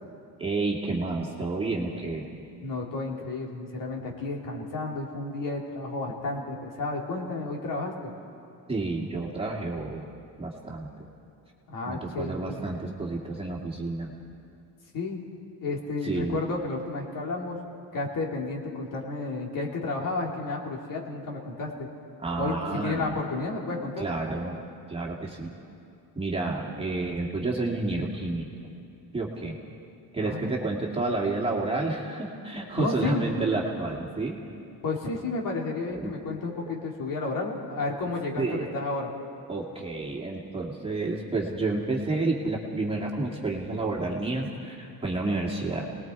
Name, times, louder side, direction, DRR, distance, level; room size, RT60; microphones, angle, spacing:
voice 1, 0.4-2.3 8.7-10.0 10.4-10.9 11.9-14.1 16.0-16.4 22.2-23.1 24.0-24.6 24.9-25.5 26.2-28.7 29.1-29.6 30.1-34.4 35.9-36.1 38.4-38.7 39.5-45.8, right 2 dB, 15° right, -2 dB, 2.3 m, -30 dB
voice 2, 2.6-7.9 11.7-12.6 14.9-15.2 15.6-17.6 17.9-21.9 22.4-24.0 30.2-30.6 32.8-33.3 34.8-39.1, left 3 dB, 55° left, -1 dB, 3.4 m, -32 dB
28.5 x 20.0 x 4.7 m, 2.7 s
cardioid pair, 140°, 39 cm